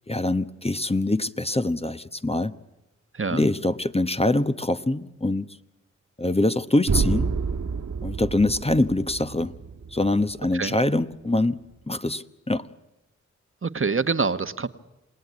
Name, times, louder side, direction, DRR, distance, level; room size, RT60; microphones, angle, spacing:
voice 1, 0.1-2.5 3.3-5.5 6.2-7.3 8.0-9.5 9.9-11.6 11.9-12.7, left 2 dB, 20° left, 11 dB, 1.0 m, -24 dB
voice 2, 3.1-3.5 10.5-10.8 13.6-14.7, right 4 dB, 45° right, 11 dB, 1.2 m, -25 dB
sound 1, 6.9-10.8, right 5 dB, 70° right, 1.9 m, -28 dB
28.0 x 18.5 x 9.5 m, 0.95 s
cardioid pair, 45°, 30 cm